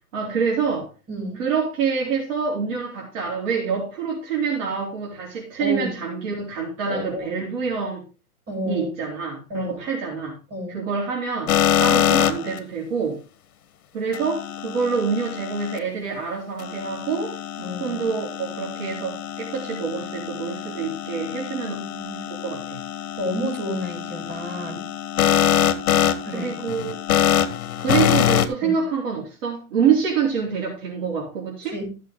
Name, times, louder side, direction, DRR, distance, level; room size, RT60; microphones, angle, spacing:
voice 1, 0.1-0.9 1.4-8.0 8.7-10.4 10.7-11.5 11.8-13.2 13.9-17.3 17.8-21.8 22.4-22.8 26.3-27.0 27.8-31.8, right 6 dB, 50° right, 4.1 m, -26 dB
voice 2, 1.1-1.4 5.6-6.0 6.9-7.5 8.5-8.9 9.5-9.8 10.5-10.8 17.6-18.1 21.6-22.2 23.2-24.8 26.2-26.5 28.6-28.8 31.7-31.9, left 1 dB, 20° right, 7.7 m, -30 dB
sound 1, 11.5-12.6 14.1-15.8 16.6-28.5, left 10 dB, 65° left, 1.6 m, -24 dB
14.5 x 7.3 x 3.8 m
hypercardioid pair, 150°, 47 cm